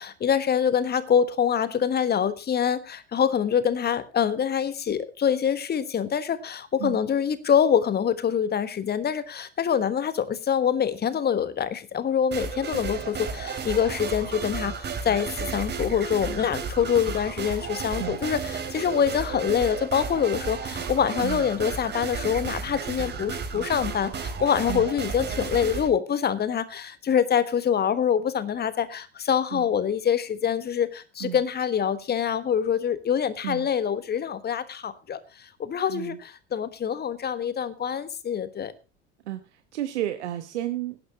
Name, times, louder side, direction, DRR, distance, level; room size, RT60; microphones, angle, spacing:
voice 1, 0.0-38.7, left 8 dB, 25° left, 14 dB, 1.4 m, -25 dB
sound 1, 12.3-25.9, right 5 dB, 30° right, 3.1 m, -33 dB
voice 2, 39.2-41.0, right 13 dB, 70° right, 9 dB, 1.1 m, -32 dB
18.0 x 11.0 x 3.0 m, 0.31 s
figure-of-eight pair, 70°, 36 cm